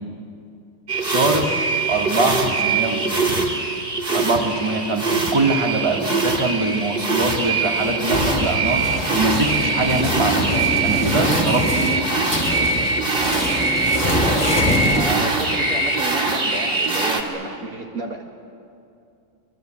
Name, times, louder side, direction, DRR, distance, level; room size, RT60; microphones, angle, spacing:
sound 1, 0.9-17.2, right 3 dB, 35° right, 2.4 m, -22 dB
voice 1, 1.0-3.2 4.1-12.1, right 2 dB, 15° right, 2 dB, 2.3 m, -23 dB
sound 2, 7.7-15.7, left 1 dB, 25° left, 3.4 m, -25 dB
voice 2, 14.0-18.3, right 2 dB, 55° right, 3 dB, 2.3 m, -31 dB
26.0 x 23.0 x 9.2 m, 2.5 s
omnidirectional pair, 1.8 m